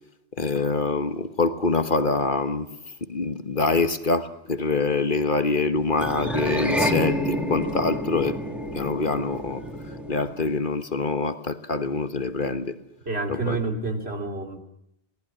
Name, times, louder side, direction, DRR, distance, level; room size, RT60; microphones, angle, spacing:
voice 1, 0.4-2.7 3.0-8.4 8.7-9.6 10.1-12.8 13.3-13.6, left 3 dB, 50° left, 1.4 m, -25 dB
sound 1, 6.0-10.5, equal, ahead, 2.9 m, -28 dB
voice 2, 13.1-14.6, right 3 dB, 65° right, 3.2 m, -29 dB
27.5 x 18.5 x 9.9 m
omnidirectional pair, 1.1 m